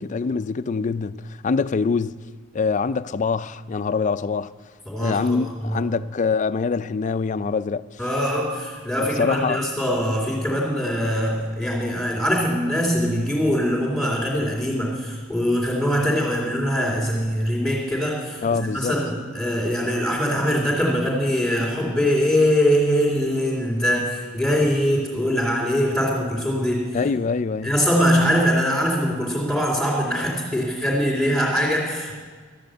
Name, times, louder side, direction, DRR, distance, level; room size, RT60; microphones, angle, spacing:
voice 1, 0.0-2.2 2.5-4.5 5.0-8.0 9.0-9.6 18.4-19.0 26.9-27.8, left 5 dB, 40° left, 0.4 m, -24 dB
voice 2, 4.8-5.8 8.0-26.8 27.6-32.2, equal, 5° left, 3.1 m, -22 dB
13.5 x 10.5 x 7.8 m
head